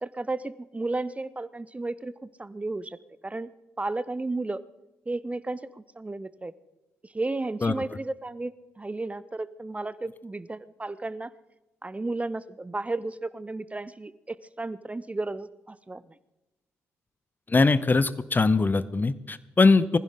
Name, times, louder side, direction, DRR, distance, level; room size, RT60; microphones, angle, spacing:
voice 1, 0.0-3.0 3.2-3.5 3.8-4.6 5.1-6.5 7.0-11.3 11.8-16.1, right 2 dB, 20° right, 17 dB, 0.7 m, -33 dB
voice 2, 17.5-20.0, left 3 dB, 25° left, 16 dB, 0.8 m, -21 dB
21.0 x 16.0 x 3.8 m, 1.0 s
figure-of-eight pair, 40°, 7 cm